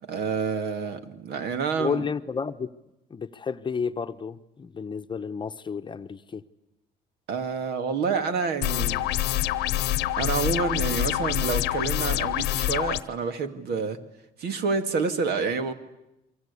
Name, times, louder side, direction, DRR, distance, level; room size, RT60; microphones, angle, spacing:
voice 1, 0.0-2.0 7.3-9.1 10.2-14.0 14.4-15.7, right 5 dB, 70° right, 8 dB, 2.3 m, -28 dB
voice 2, 1.8-2.7 3.1-6.4, left 6 dB, 30° left, 9 dB, 0.9 m, -31 dB
sound 1, 8.6-13.0, left 14 dB, 85° left, 1.0 m, -26 dB
28.5 x 24.0 x 8.4 m, 0.90 s
cardioid pair, 110°, 17 cm